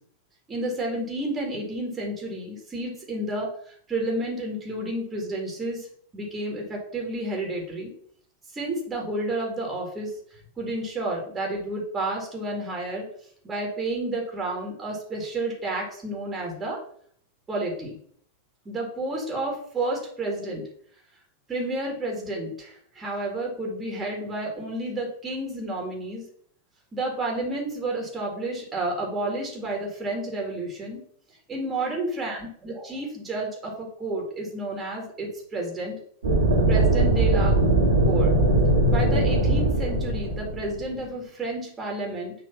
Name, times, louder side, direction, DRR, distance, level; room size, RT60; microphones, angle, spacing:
voice 1, 0.5-5.9 6.1-7.9 8.5-13.1 13.4-16.8 17.5-18.0 18.7-20.6 21.5-26.2 26.9-31.0 31.5-36.0 36.7-37.6 38.0-38.4 38.9-42.3, right 2 dB, 15° right, 0 dB, 2.0 m, -31 dB
sound 1, 36.2-41.0, right 1 dB, 70° right, 1.8 m, -21 dB
6.7 x 3.5 x 5.7 m, 0.62 s
figure-of-eight pair, 90°, 0 cm